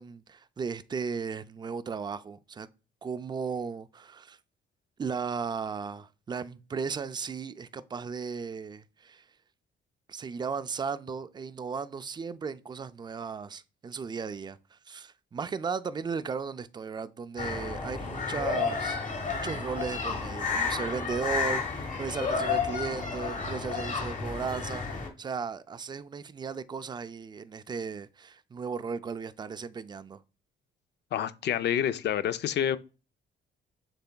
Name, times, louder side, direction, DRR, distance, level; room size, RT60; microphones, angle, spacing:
voice 1, 0.0-2.7 3.0-4.4 5.0-9.3 10.1-19.0 19.3-30.2, right 5 dB, 20° right, 0.3 m, -36 dB
sound 1, 17.4-25.1, left 5 dB, 40° left, 1.1 m, -31 dB
voice 2, 31.1-32.8, left 9 dB, 60° left, 0.4 m, -28 dB
6.8 x 3.3 x 2.2 m
cardioid pair, 90°, 20 cm